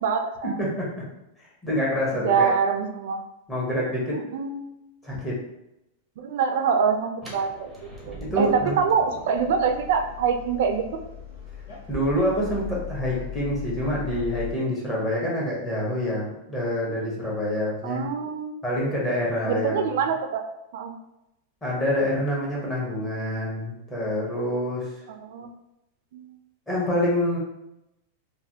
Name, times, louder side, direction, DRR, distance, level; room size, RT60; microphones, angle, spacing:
voice 1, 0.0-0.6 2.2-3.2 4.1-4.7 6.2-7.7 8.1-10.9 17.8-18.5 19.4-20.5 20.7-20.9 25.2-25.5 26.1-26.3, right 6 dB, 65° right, 6 dB, 0.4 m, -25 dB
voice 2, 1.6-2.5 3.5-4.2 5.0-5.4 8.2-8.8 11.9-18.0 18.6-19.9 21.6-24.9 26.7-27.4, equal, 15° left, -6 dB, 0.9 m, -26 dB
sound 1, 7.2-13.0, right 1 dB, 10° right, 0.6 m, -45 dB
sound 2, 9.3-14.5, left 8 dB, 60° left, 1.2 m, -38 dB
3.1 x 2.2 x 2.7 m, 0.88 s
supercardioid pair, 155°, 0 cm